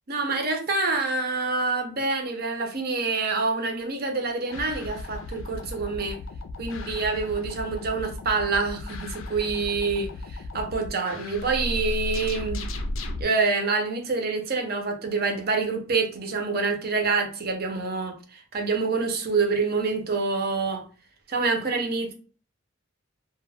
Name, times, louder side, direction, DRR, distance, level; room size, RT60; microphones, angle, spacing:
voice 1, 0.1-6.2 6.6-12.6 13.2-20.8 21.3-22.1, right 4 dB, 50° right, 0.6 m, -26 dB
sound 1, 4.5-13.2, left 1 dB, 70° left, 0.4 m, -35 dB
2.2 x 2.1 x 3.3 m
head